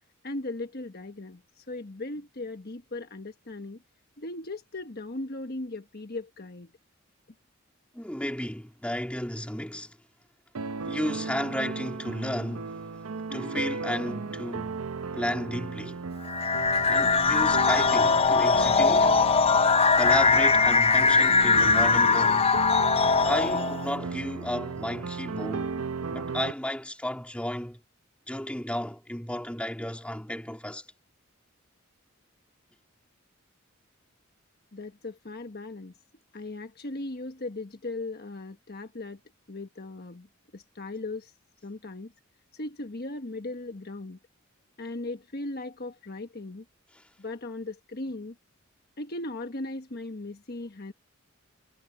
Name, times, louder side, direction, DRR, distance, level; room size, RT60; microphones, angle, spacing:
voice 1, 0.2-3.8 4.2-6.7 34.7-35.9 36.3-39.2 39.5-40.3 40.5-41.3 41.6-42.1 42.5-44.2 44.8-46.6 47.2-48.3 49.0-50.9, left 2 dB, 45° left, 1.3 m, -38 dB
voice 2, 7.9-10.0 10.8-13.0 13.3-14.8 15.1-16.0 16.8-19.2 19.9-22.5 23.2-25.7 26.1-27.8 28.3-30.8, left 1 dB, 5° left, 2.7 m, -33 dB
sound 1, 10.5-26.5, right 4 dB, 90° right, 0.7 m, -35 dB
sound 2, 16.3-23.9, left 4 dB, 30° left, 0.5 m, -21 dB
head